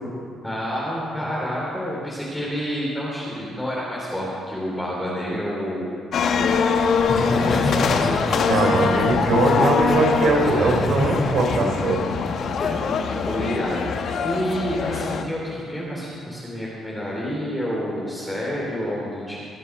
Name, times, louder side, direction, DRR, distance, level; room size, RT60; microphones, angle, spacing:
voice 1, 0.4-6.6 7.2-8.5 12.6-19.4, equal, 5° left, -7 dB, 4.0 m, -29 dB
sound 1, 6.1-15.2, left 6 dB, 65° left, 1.0 m, -23 dB
Laughter, 7.0-12.7 13.1-13.4, left 1 dB, 25° left, 3.5 m, -28 dB
voice 2, 8.5-12.2, right 3 dB, 65° right, 1 dB, 3.3 m, -21 dB
22.5 x 8.1 x 6.5 m, 2.3 s
cardioid pair, 90°, 0 cm